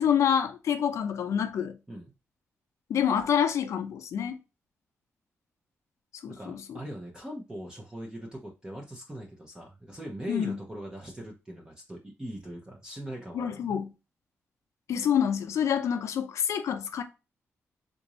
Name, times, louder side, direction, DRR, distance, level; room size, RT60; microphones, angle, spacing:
voice 1, 0.0-1.8 2.9-4.4 6.2-6.8 10.3-10.6 13.3-13.9 14.9-17.0, left 8 dB, 80° left, 0.5 m, -27 dB
voice 2, 6.3-13.8, right 1 dB, 15° right, 0.7 m, -41 dB
3.7 x 2.6 x 3.0 m
wide cardioid pair, 120°, 5 cm